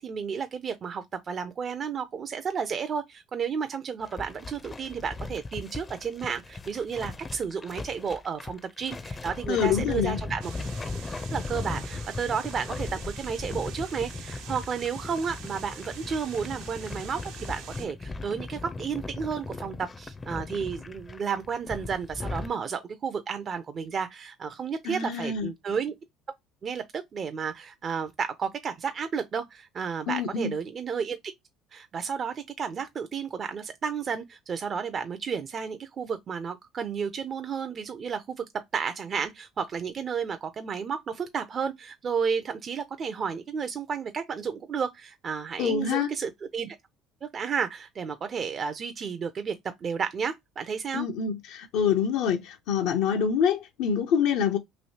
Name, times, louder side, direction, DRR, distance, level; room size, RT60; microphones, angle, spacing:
voice 1, 0.0-10.4 11.3-25.9 26.6-31.3 31.7-38.4 38.7-46.8 47.2-49.5 49.8-51.1, right 6 dB, 40° right, 0.5 m, -32 dB
sound 1, 4.0-22.5, left 3 dB, 25° left, 0.5 m, -38 dB
voice 2, 9.5-10.2 24.8-25.5 30.1-30.5 45.6-46.1 50.9-54.6, left 7 dB, 75° left, 0.6 m, -26 dB
sound 2, 10.4-17.9, right 8 dB, 80° right, 0.7 m, -46 dB
3.1 x 2.7 x 2.7 m
supercardioid pair, 105°, 0 cm